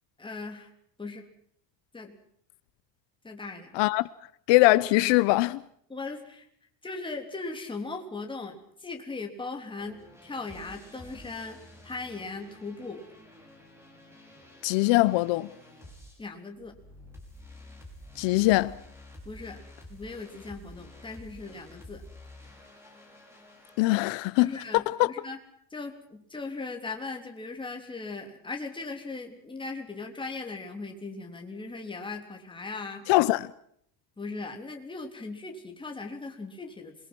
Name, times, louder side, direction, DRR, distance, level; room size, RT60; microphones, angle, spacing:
voice 1, 0.2-0.7 1.0-1.2 1.9-2.2 3.2-3.8 5.9-6.5 6.8-13.0 16.2-16.7 19.2-19.6 19.9-22.0 24.4-25.4 25.7-33.1 34.2-37.0, left 3 dB, 10° left, 3.3 m, -38 dB
voice 2, 4.5-5.6 14.6-15.5 18.2-18.8 23.8-25.1 33.1-33.5, left 20 dB, 70° left, 0.9 m, -22 dB
sound 1, 9.8-16.2 16.6-23.9, left 1 dB, 5° right, 5.7 m, -50 dB
27.5 x 22.5 x 6.2 m
cardioid pair, 165°, 45 cm